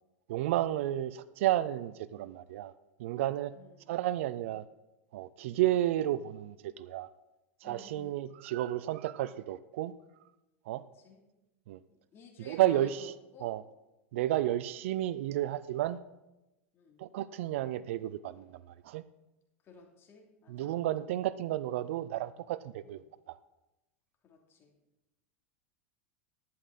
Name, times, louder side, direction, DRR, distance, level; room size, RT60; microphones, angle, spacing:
voice 1, 0.3-2.7 3.0-3.5 3.9-4.6 5.1-7.1 7.6-9.9 10.7-10.8 11.7-11.8 12.4-13.1 13.4-13.6 14.1-16.0 17.0-19.0 20.5-23.4, right 13 dB, 65° right, 16 dB, 0.5 m, -32 dB
voice 2, 3.5-3.9 5.5-5.6 7.6-8.3 11.0-11.2 11.9-13.5 14.3-14.4 16.7-17.0 19.6-20.7 22.8-23.1 24.2-24.7, left 4 dB, 35° left, 1 dB, 2.9 m, -54 dB
11.5 x 10.5 x 4.1 m, 0.97 s
hypercardioid pair, 100°, 7 cm